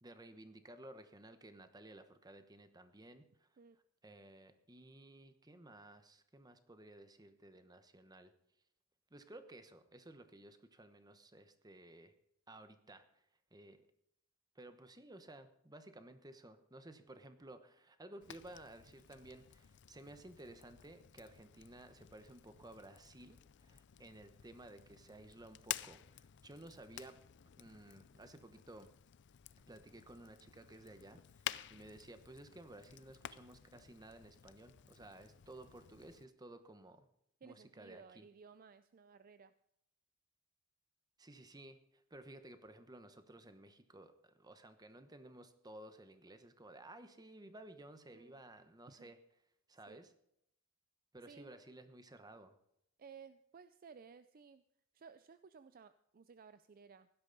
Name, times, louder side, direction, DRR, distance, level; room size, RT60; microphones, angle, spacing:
voice 1, 0.0-3.5 4.0-8.3 9.1-12.1 12.5-13.2 13.5-13.8 14.5-27.2 27.6-28.9 29.7-37.1 37.4-38.3 41.2-49.2 49.7-50.1 51.1-52.5, right 1 dB, 20° right, 9 dB, 1.1 m, -55 dB
Fire, 18.2-36.3, left 12 dB, 55° left, 0.5 m, -52 dB
voice 2, 37.4-39.5 48.1-48.4 48.9-49.1 49.9-50.1 51.3-51.5 53.0-54.6 54.9-57.1, right 6 dB, 40° right, 12 dB, 0.4 m, -58 dB
16.5 x 12.0 x 4.0 m, 0.76 s
head